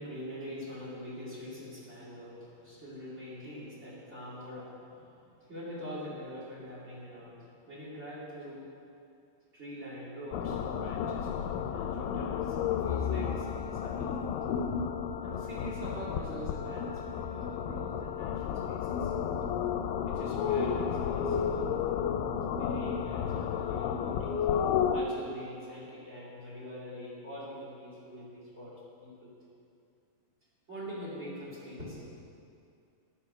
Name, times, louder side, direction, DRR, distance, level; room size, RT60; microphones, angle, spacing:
voice 1, 0.0-8.7 9.5-14.2 15.2-19.1 20.0-21.7 22.5-24.4 24.9-29.3 30.7-32.1, equal, 15° right, -7 dB, 4.2 m, -44 dB
sound 1, 10.3-25.0, left 8 dB, 85° left, 3.0 m, -32 dB
14.0 x 12.5 x 6.9 m, 2.5 s
omnidirectional pair, 5.5 m